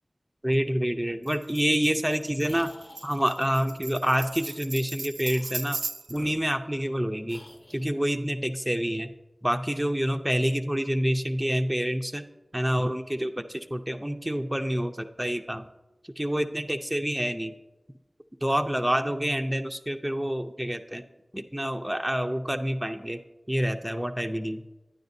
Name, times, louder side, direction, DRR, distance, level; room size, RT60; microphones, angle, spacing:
voice 1, 0.4-2.7 3.0-5.8 6.1-7.4 7.7-9.1 9.4-12.2 12.5-15.7 16.2-17.5 18.4-21.0 21.3-23.2 23.5-24.6, equal, 10° right, 4 dB, 0.5 m, -27 dB
Tambourine, 1.3-6.3, right 3 dB, 80° right, 0.4 m, -38 dB
sound 1, 2.4-3.6 4.3-4.5 5.2-5.7 6.1-7.0 7.3-7.9, left 1 dB, 55° left, 0.9 m, -50 dB
12.0 x 9.4 x 2.6 m, 1.1 s
wide cardioid pair, 50°, 0 cm